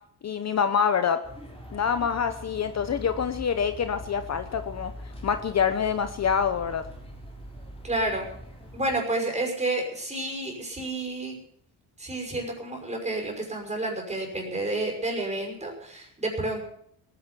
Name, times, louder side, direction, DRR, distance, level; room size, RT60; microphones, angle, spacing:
voice 1, 0.2-1.2 1.7-4.9 5.2-6.8, left 7 dB, 40° left, 9 dB, 0.9 m, -26 dB
sound 1, 1.2-9.0, left 1 dB, 15° left, 3.6 m, -42 dB
voice 2, 7.8-8.4 8.7-11.4 12.0-16.6, right 2 dB, 15° right, 1 dB, 5.8 m, -30 dB
18.5 x 10.5 x 7.0 m, 0.71 s
cardioid pair, 140°, 40 cm